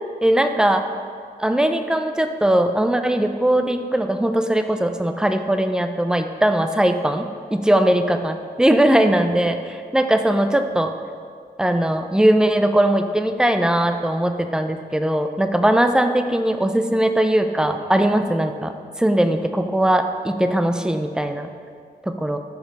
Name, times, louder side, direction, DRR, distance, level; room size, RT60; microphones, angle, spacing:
voice 1, 0.2-0.8 1.4-10.9 11.6-21.5 22.0-22.4, right 1 dB, 5° right, 7 dB, 0.4 m, -20 dB
7.6 x 5.1 x 5.2 m, 2.2 s
wide cardioid pair, 150°, 16 cm